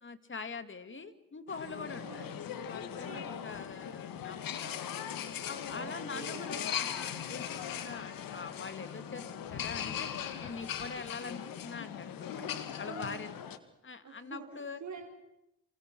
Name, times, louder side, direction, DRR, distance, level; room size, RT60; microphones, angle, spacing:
voice 1, 0.0-2.3 2.6-5.0 5.4-10.1 10.4-12.5 12.8-13.3 13.8-14.8, left 4 dB, 35° left, 10 dB, 2.4 m, -44 dB
sound 1, 1.5-13.6, left 9 dB, 75° left, 2.0 m, -39 dB
voice 2, 1.7-2.4 3.0-3.5 5.7-6.6 12.8-13.3 14.0-15.1, right 5 dB, 55° right, 2 dB, 5.0 m, -47 dB
29.0 x 28.0 x 6.2 m, 0.87 s
cardioid pair, 70°, 35 cm